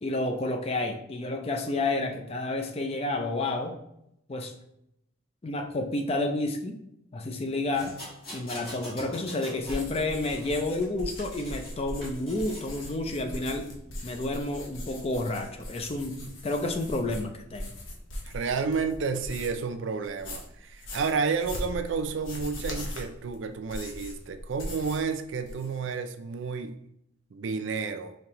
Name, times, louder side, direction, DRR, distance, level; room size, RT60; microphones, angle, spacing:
voice 1, 0.0-3.8 4.3-4.5 5.4-6.8 7.1-8.0 8.3-13.7 14.0-17.7, left 2 dB, 30° left, 5 dB, 0.4 m, -30 dB
sound 1, 7.7-9.9 10.2-11.7 12.0-12.7 13.3-13.5, equal, 50° left, 1.5 m, -43 dB
sound 2, 9.6-19.7 20.0-25.1 25.4-25.9, left 1 dB, 80° left, 0.8 m, -40 dB
voice 2, 18.2-26.8 27.3-28.2, right 5 dB, 70° right, 8 dB, 0.4 m, -31 dB
5.1 x 2.8 x 2.9 m, 0.80 s
head